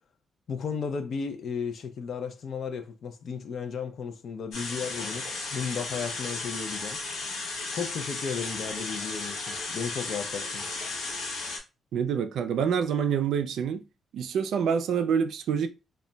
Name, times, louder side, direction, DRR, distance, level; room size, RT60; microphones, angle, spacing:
voice 1, 0.5-7.0 7.7-10.7, left 6 dB, 60° left, 0.4 m, -34 dB
sound 1, 4.5-11.6, left 3 dB, 85° left, 0.8 m, -35 dB
voice 2, 11.9-13.8 14.1-15.7, right 7 dB, 80° right, 0.3 m, -26 dB
2.2 x 2.1 x 3.8 m
cardioid pair, 105°, 0 cm